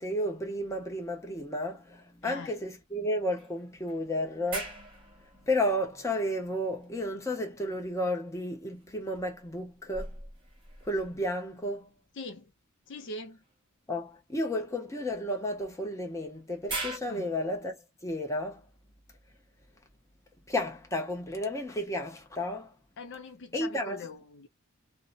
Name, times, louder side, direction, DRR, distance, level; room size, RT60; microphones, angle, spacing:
voice 1, 0.0-10.2 10.8-11.9 13.9-17.8 18.0-18.6 20.5-22.7 23.5-24.1, left 1 dB, 15° left, 0.7 m, -32 dB
sound 1, 0.6-1.9 2.3-2.4 3.4-6.8 8.6-11.7 13.4-13.6 15.7-17.0, right 2 dB, 25° right, 1.0 m, -43 dB
voice 2, 12.2-12.5 12.9-13.4 17.1-17.3 23.0-24.5, left 3 dB, 55° left, 0.5 m, -42 dB
2.7 x 2.1 x 2.3 m
head